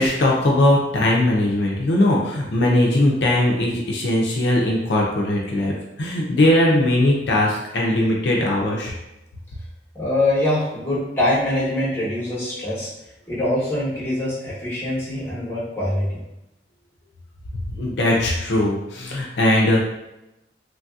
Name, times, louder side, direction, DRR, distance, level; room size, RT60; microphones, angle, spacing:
voice 1, 0.0-8.9 17.7-19.8, left 1 dB, 70° left, -2 dB, 0.5 m, -19 dB
voice 2, 9.9-12.9 13.3-16.2, left 1 dB, 10° left, -8 dB, 1.1 m, -23 dB
3.1 x 2.6 x 2.3 m, 0.92 s
head